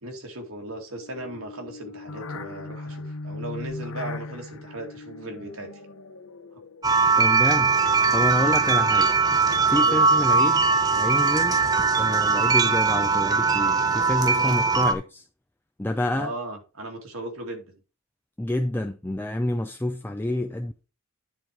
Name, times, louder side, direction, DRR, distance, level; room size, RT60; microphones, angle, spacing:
voice 1, 0.0-5.7 8.3-8.5 9.8-10.0 14.3-14.6 16.2-17.7, right 1 dB, 75° right, 2.3 m, -37 dB
sound 1, 1.0-7.4, left 3 dB, 75° left, 0.8 m, -39 dB
sound 2, 6.8-14.9, right 4 dB, 15° right, 0.7 m, -20 dB
voice 2, 7.2-7.8 8.1-9.1 9.7-10.6 10.9-11.6 12.0-15.3 15.8-16.3 18.4-20.7, left 1 dB, 10° left, 0.4 m, -28 dB
10.0 x 4.5 x 4.8 m
head